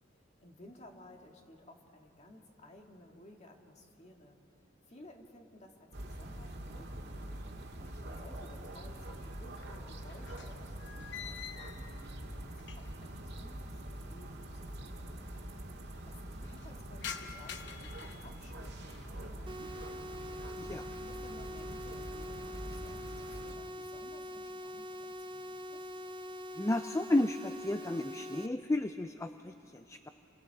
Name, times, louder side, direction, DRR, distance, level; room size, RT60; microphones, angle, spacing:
voice 1, 0.0-7.3 8.0-11.9 12.4-15.6 16.1-20.2 20.9-25.8, left 1 dB, 35° left, 2 dB, 2.1 m, -57 dB
sound 1, 5.9-23.5, right 1 dB, 60° right, 1.9 m, -45 dB
sound 2, 7.9-8.7 9.0-13.1 13.4-13.5 14.4-14.5 14.6-14.7 15.0-15.5 15.9-19.1 19.5-20.1 20.5-20.9 21.3-22.2, left 8 dB, 60° left, 1.0 m, -49 dB
sound 3, 19.5-28.5, left 1 dB, 25° right, 0.7 m, -44 dB
voice 2, 26.6-30.1, left 1 dB, 15° left, 9 dB, 0.4 m, -33 dB
29.5 x 25.5 x 4.8 m, 2.9 s
head